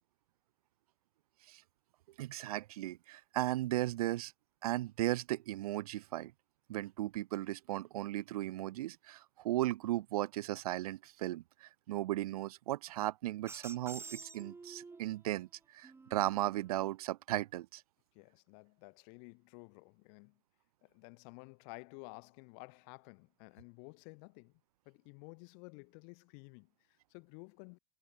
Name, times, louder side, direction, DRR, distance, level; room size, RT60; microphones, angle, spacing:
voice 1, 2.2-4.3 4.6-6.3 6.7-17.8, right 15 dB, 70° right, 0.5 m, -36 dB
sound 1, 13.5-15.2 15.8-17.0, right 4 dB, 10° right, 0.9 m, -50 dB
voice 2, 18.1-20.4 20.8-24.5 24.8-27.8, left 40 dB or more, 55° left, 6.4 m, -53 dB
hypercardioid pair, 85°, 20 cm